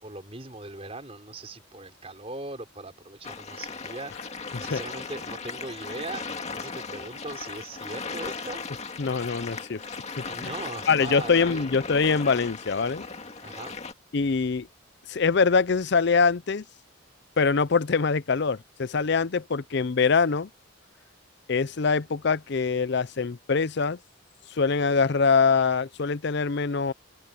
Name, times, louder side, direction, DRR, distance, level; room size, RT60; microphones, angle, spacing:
voice 1, 0.0-4.1 4.6-8.6 10.3-11.7 13.4-13.8, right 2 dB, 30° right, 4.4 m, -39 dB
sound 1, 3.2-13.9, left 4 dB, 35° left, 2.0 m, -37 dB
voice 2, 9.0-10.5 10.9-13.0 14.1-14.7 15.1-16.6 17.4-20.5 21.5-24.0 24.5-26.9, left 5 dB, 55° left, 0.6 m, -24 dB
head